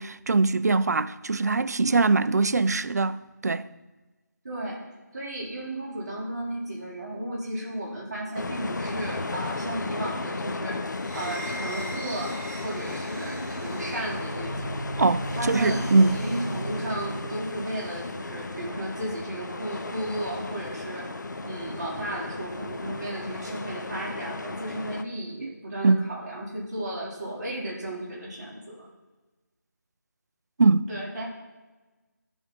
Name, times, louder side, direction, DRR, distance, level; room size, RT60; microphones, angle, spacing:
voice 1, 0.0-3.6 15.0-16.2 25.4-25.5 25.8-26.1 30.6-30.9, right 3 dB, 60° right, 0.3 m, -22 dB
voice 2, 4.4-4.9 5.1-12.4 12.6-14.8 15.3-28.9 30.9-31.3, right 1 dB, 25° right, 1.2 m, -34 dB
sound 1, 8.3-25.0, left 3 dB, 75° left, 0.6 m, -35 dB
sound 2, 10.9-17.5, right 1 dB, 5° left, 0.6 m, -36 dB
10.5 x 3.5 x 5.3 m
figure-of-eight pair, 175°, 10 cm